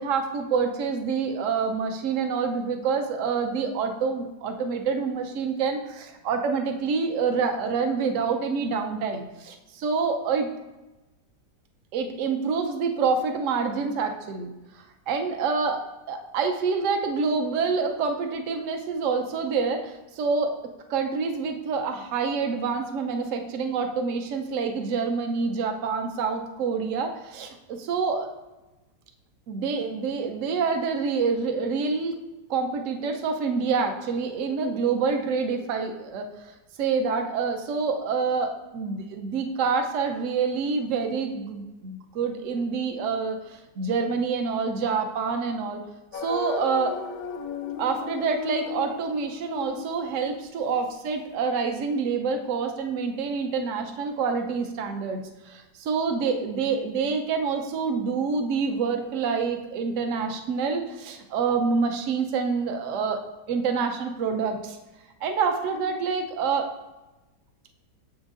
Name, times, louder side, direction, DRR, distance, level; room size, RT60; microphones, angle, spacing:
voice 1, 0.0-10.5 11.9-15.8 16.1-20.5 20.9-28.3 29.5-32.2 32.5-36.5 36.8-45.8 46.1-46.9 47.8-55.2 55.5-63.2 63.5-64.8 65.2-66.7, right 5 dB, 60° right, 4 dB, 0.8 m, -27 dB
sound 1, 46.1-51.0, left 7 dB, 70° left, 0.8 m, -36 dB
7.3 x 6.3 x 2.5 m, 1.1 s
omnidirectional pair, 1.9 m